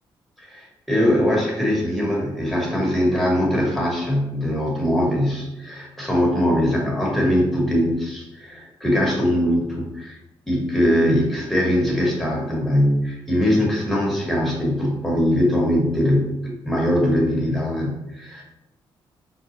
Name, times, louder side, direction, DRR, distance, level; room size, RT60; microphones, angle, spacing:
voice 1, 0.4-10.2 10.5-16.4 16.6-18.4, equal, ahead, -4 dB, 1.4 m, -21 dB
5.3 x 2.3 x 2.8 m, 0.95 s
cardioid pair, 85°, 10 cm